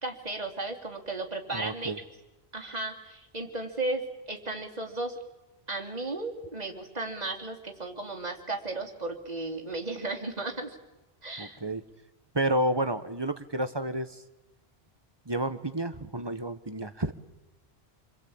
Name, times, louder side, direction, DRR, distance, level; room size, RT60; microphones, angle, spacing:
voice 1, 0.0-1.9 2.5-5.1 5.7-10.8 11.2-11.6, right 2 dB, 40° right, 2 dB, 3.2 m, -35 dB
voice 2, 1.5-2.0 11.4-11.8 12.3-14.2 15.3-17.1, right 1 dB, 25° right, 11 dB, 1.3 m, -30 dB
28.5 x 22.5 x 8.8 m, 1.0 s
omnidirectional pair, 1.1 m